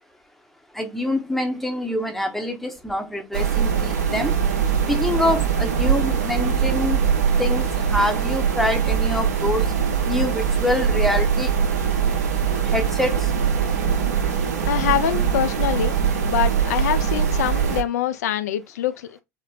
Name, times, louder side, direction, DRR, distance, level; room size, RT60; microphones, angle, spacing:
voice 1, 0.7-4.3 4.9-7.0 7.4-9.7 10.1-11.5 12.7-13.3, left 1 dB, ahead, 0.8 m, -25 dB
sound 1, 3.3-17.8, right 7 dB, 75° right, 0.6 m, -22 dB
voice 2, 14.7-16.0 16.3-19.2, left 11 dB, 75° left, 0.4 m, -24 dB
4.1 x 2.1 x 2.3 m
hypercardioid pair, 75°, 9 cm